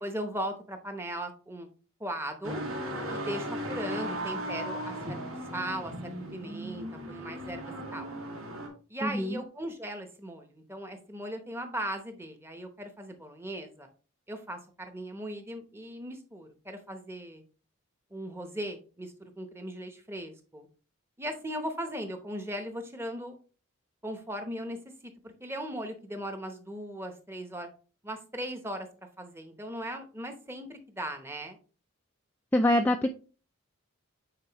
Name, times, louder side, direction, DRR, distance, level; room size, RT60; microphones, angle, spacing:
voice 1, 0.0-1.7 2.0-2.6 3.0-5.2 5.5-5.9 6.3-8.1 8.9-13.9 14.3-17.4 18.1-20.7 21.2-23.4 24.0-27.7 28.0-28.9 29.2-31.6, right 1 dB, 10° right, 6 dB, 0.9 m, -38 dB
sound 1, 2.4-8.7, equal, 70° right, 2.2 m, -36 dB
voice 2, 9.0-9.4 32.5-33.2, left 1 dB, 10° left, 4 dB, 0.3 m, -25 dB
8.9 x 4.3 x 3.0 m, 0.36 s
head